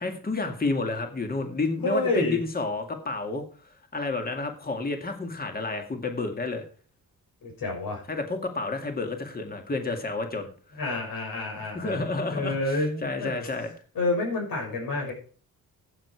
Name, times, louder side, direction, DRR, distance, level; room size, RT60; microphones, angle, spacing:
voice 1, 0.0-3.4 3.9-6.6 8.1-10.5 11.7-13.7, left 3 dB, 25° left, 5 dB, 2.1 m, -30 dB
voice 2, 1.8-2.4 7.4-8.0 10.8-13.3 13.9-15.1, left 2 dB, 70° left, 0 dB, 6.2 m, -29 dB
15.0 x 8.5 x 4.6 m, 0.41 s
wide cardioid pair, 145°, 35 cm